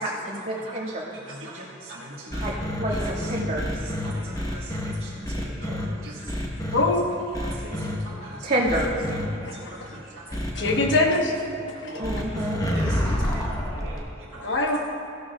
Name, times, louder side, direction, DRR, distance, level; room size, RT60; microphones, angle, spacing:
voice 1, 0.0-1.1 2.4-2.5 2.8-3.6 5.7-6.1 8.4-8.9 12.0-12.6, right 1 dB, 40° right, -6 dB, 2.0 m, -28 dB
voice 2, 1.2-2.6 2.8-3.3 3.8-6.4 7.4-8.5 9.1-10.1 10.5-10.6 11.8-12.4 12.7-14.7, right 1 dB, 70° right, -8 dB, 1.5 m, -42 dB
sound 1, 2.3-4.9 5.2-5.8 6.3-6.8 7.3-8.0 8.7-9.2 10.3-10.9 12.0-14.0, left 1 dB, 15° left, 1.0 m, -28 dB
voice 3, 6.7-7.1 9.5-9.7 10.6-11.3 11.6-12.0 14.4-14.8, left 2 dB, 55° left, 1 dB, 1.2 m, -23 dB
16.5 x 12.5 x 2.3 m, 2.8 s
head